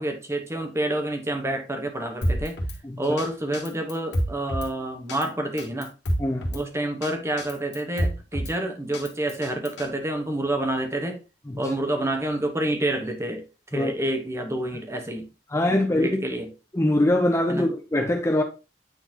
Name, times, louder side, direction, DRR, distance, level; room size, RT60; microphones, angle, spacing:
voice 1, 0.0-2.6 3.0-5.9 6.5-11.2 11.6-13.4 13.7-15.3 15.7-16.5 17.5-17.6, right 1 dB, 15° right, 1.1 m, -28 dB
Drum kit, 2.2-2.8 3.2-3.3 3.5-4.7 5.1-5.3 5.6-6.6 7.0-7.1 7.4-8.5 8.9-9.9, equal, 75° left, 1.6 m, -28 dB
voice 2, 6.2-6.5 11.5-11.7 13.7-13.9 15.5-16.2 16.7-18.4, left 1 dB, 15° left, 0.6 m, -23 dB
9.0 x 4.0 x 2.8 m
head